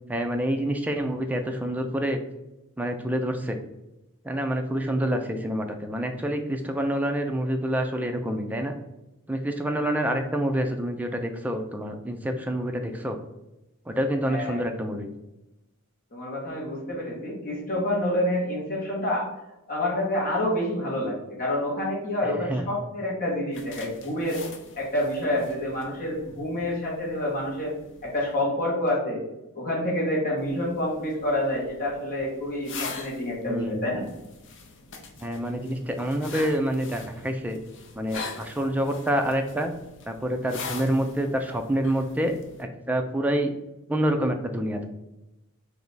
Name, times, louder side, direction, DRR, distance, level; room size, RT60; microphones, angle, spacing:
voice 1, 0.1-2.2 2.8-3.6 4.2-8.7 9.3-13.2 13.9-15.1 22.5-22.6 33.5-33.9 35.2-37.6 38.0-39.7 40.1-43.5 43.9-44.9, right 1 dB, 5° right, 4 dB, 0.4 m, -27 dB
voice 2, 14.3-14.6 16.1-19.3 19.7-24.4 24.7-27.7 28.0-29.2 29.5-34.0, left 1 dB, 40° left, -4 dB, 1.4 m, -28 dB
sound 1, 23.5-28.3 30.4-42.6, left 4 dB, 55° left, 0.6 m, -43 dB
3.4 x 3.0 x 3.9 m, 0.93 s
head